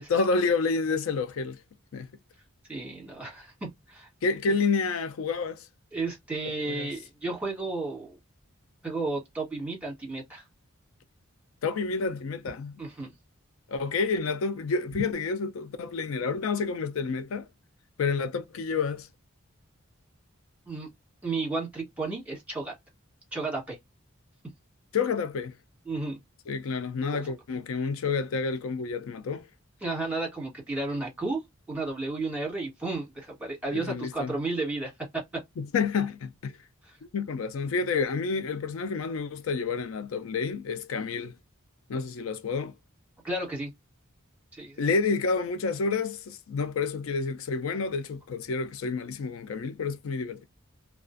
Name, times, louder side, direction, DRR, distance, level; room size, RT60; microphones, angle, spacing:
voice 1, 0.1-1.6 1.9-2.1 4.2-5.7 6.6-6.9 11.6-12.7 13.7-17.5 18.0-19.1 24.9-25.6 26.5-29.5 33.7-34.3 35.6-36.5 37.1-41.3 41.9-42.7 44.8-50.4, left 4 dB, 70° left, 0.4 m, -29 dB
voice 2, 2.7-4.1 5.9-8.2 8.8-10.4 12.8-13.1 20.7-20.9 21.2-22.7 23.3-23.8 25.9-26.2 27.1-27.2 29.8-31.4 31.7-35.4 36.8-37.0 43.2-43.7 44.5-44.9, right 3 dB, 5° right, 1.3 m, -33 dB
2.4 x 2.3 x 2.4 m
head